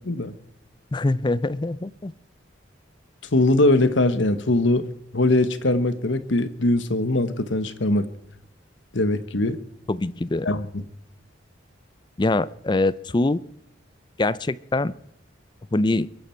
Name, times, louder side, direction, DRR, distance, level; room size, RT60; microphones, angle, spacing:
voice 1, 0.9-2.1 9.9-10.5 12.2-13.4 14.2-14.9 15.7-16.1, left 2 dB, 25° left, 18 dB, 0.5 m, -23 dB
voice 2, 3.3-4.9 5.1-8.1 8.9-9.6 10.4-10.7, left 2 dB, 75° left, 13 dB, 1.1 m, -21 dB
22.5 x 11.0 x 4.5 m, 0.77 s
head